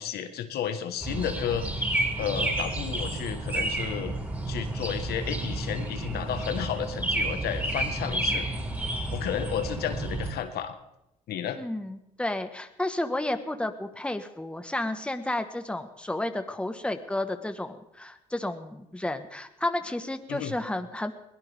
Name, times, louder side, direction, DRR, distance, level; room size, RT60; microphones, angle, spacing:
voice 1, 0.0-1.7 2.2-4.2 4.5-8.5 9.1-10.8 11.3-11.6 20.3-20.6, left 9 dB, 70° left, 8 dB, 1.5 m, -32 dB
sound 1, 1.0-10.3, right 1 dB, 10° right, 6.1 m, -30 dB
voice 2, 11.6-21.1, left 1 dB, 5° left, 8 dB, 1.5 m, -32 dB
22.0 x 17.0 x 3.6 m, 0.84 s
supercardioid pair, 70°, 17 cm